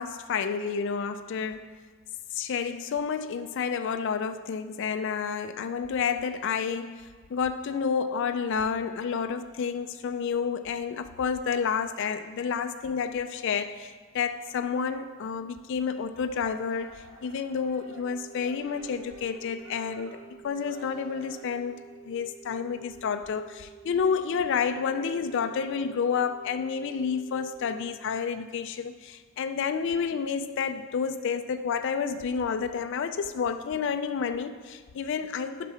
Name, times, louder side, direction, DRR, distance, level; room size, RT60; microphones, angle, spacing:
voice 1, 0.0-1.7 2.3-20.2 20.4-21.8 22.0-35.7, left 6 dB, 55° left, 8 dB, 0.3 m, -30 dB
sound 1, 16.7-21.7, right 2 dB, 75° right, 1.3 m, -52 dB
sound 2, 17.9-27.9, right 8 dB, 5° left, 0.8 m, -50 dB
8.8 x 5.8 x 5.7 m, 1.5 s
head